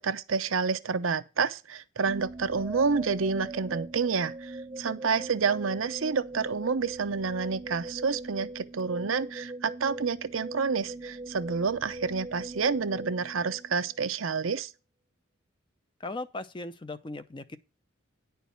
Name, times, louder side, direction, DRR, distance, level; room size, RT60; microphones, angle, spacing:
voice 1, 0.0-14.7, right 5 dB, 75° right, 0.7 m, -29 dB
sound 1, 2.0-14.1, right 2 dB, 20° right, 0.5 m, -41 dB
voice 2, 16.0-17.6, left 2 dB, 25° left, 0.6 m, -38 dB
10.0 x 4.6 x 6.8 m
head